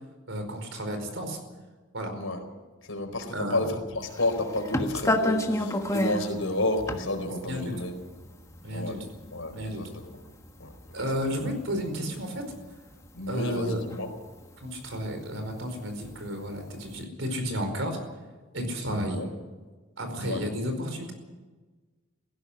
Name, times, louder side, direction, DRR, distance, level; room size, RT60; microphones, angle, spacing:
voice 1, 0.3-1.4 1.9-2.1 3.3-3.7 7.5-7.7 8.6-9.0 9.5-9.8 10.9-12.4 13.3-13.8 14.6-18.0 18.5-19.3 20.0-21.1, equal, 65° right, 6 dB, 4.9 m, -32 dB
voice 2, 2.1-2.4 2.8-7.9 8.7-9.0 9.3-10.1 10.6-10.7 11.0-11.1 13.1-14.1 18.9-19.3 20.2-20.4, left 2 dB, 80° left, 5 dB, 4.3 m, -31 dB
sound 1, 4.1-12.2 12.5-16.2 16.6-17.0, left 1 dB, 15° left, 1.4 m, -31 dB
18.0 x 15.5 x 10.0 m, 1.3 s
head